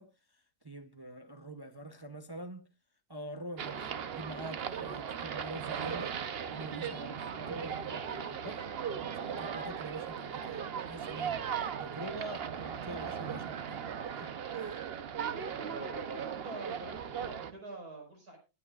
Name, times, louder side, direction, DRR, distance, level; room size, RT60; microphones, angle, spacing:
voice 1, 0.0-2.7 3.1-6.2 6.5-8.7 9.3-11.5 11.8-14.8, right 1 dB, 25° right, 0.5 m, -45 dB
sound 1, 3.6-17.5, right 7 dB, 50° right, 0.9 m, -38 dB
voice 2, 15.5-18.4, right 2 dB, 75° right, 5.4 m, -45 dB
20.0 x 9.1 x 2.4 m
omnidirectional pair, 1.6 m